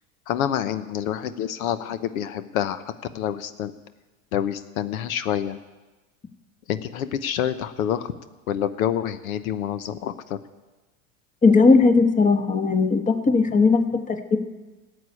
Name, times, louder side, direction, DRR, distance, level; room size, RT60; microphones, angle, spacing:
voice 1, 0.3-2.8 3.1-3.7 4.3-5.6 6.7-8.1 8.5-10.4, left 10 dB, 80° left, 13 dB, 1.0 m, -27 dB
voice 2, 11.4-14.4, left 4 dB, 20° left, 9 dB, 1.2 m, -18 dB
13.5 x 8.2 x 9.7 m, 1.2 s
supercardioid pair, 110°, 41 cm